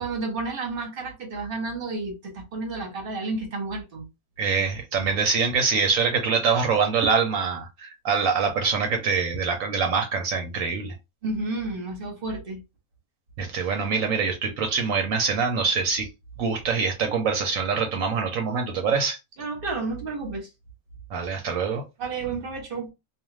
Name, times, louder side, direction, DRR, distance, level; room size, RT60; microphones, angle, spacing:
voice 1, 0.0-4.1 4.6-4.7 11.2-12.6 19.4-20.5 22.0-22.9, right 3 dB, 45° right, 0.9 m, -31 dB
voice 2, 4.4-10.9 13.4-16.1 16.4-19.2 21.1-21.8, right 5 dB, 70° right, 0.9 m, -24 dB
2.4 x 2.4 x 3.1 m
omnidirectional pair, 1.6 m